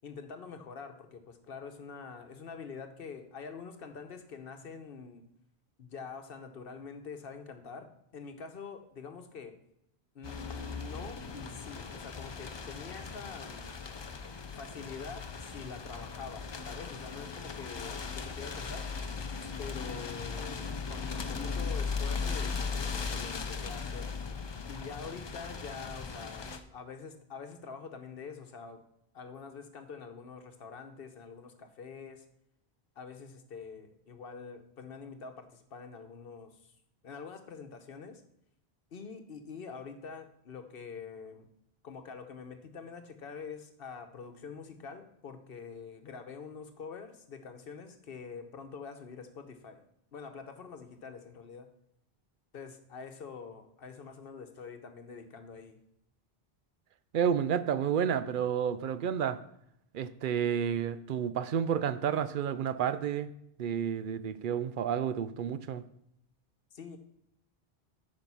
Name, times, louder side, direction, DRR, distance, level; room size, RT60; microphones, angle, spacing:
voice 1, 0.0-5.2 5.8-9.5 10.1-13.7 14.6-18.9 19.6-24.1 24.7-28.8 29.1-32.2 33.0-36.7 37.0-38.2 38.9-41.5 41.8-49.8 50.1-51.7 52.5-55.8 66.7-67.0, left 5 dB, 65° left, 1.1 m, -45 dB
sound 1, 10.2-26.6, left 5 dB, 35° left, 0.5 m, -38 dB
voice 2, 57.1-59.4 59.9-63.3 63.6-65.8, right 8 dB, 60° right, 0.6 m, -30 dB
9.1 x 5.3 x 5.5 m
omnidirectional pair, 1.0 m